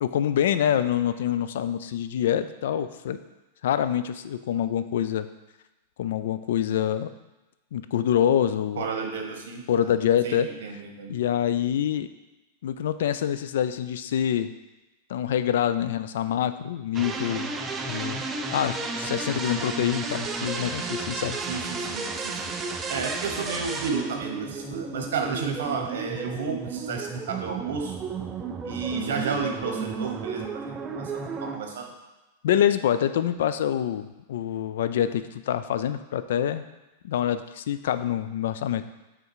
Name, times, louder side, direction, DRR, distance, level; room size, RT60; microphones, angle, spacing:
voice 1, 0.0-3.2 3.6-5.3 6.0-7.1 7.7-8.9 9.7-10.5 11.1-12.1 12.6-14.5 15.1-17.5 17.8-18.2 18.5-21.4 32.4-36.6 37.0-38.9, left 10 dB, 70° left, 12 dB, 0.3 m, -26 dB
voice 2, 8.8-9.9 10.2-11.2 21.5-22.5 22.9-27.9 28.6-30.6 30.9-31.9, right 5 dB, 85° right, 2 dB, 1.1 m, -32 dB
sound 1, 16.9-31.6, right 4 dB, 15° right, 0.4 m, -33 dB
5.5 x 3.8 x 4.7 m, 1.1 s
supercardioid pair, 165°, 0 cm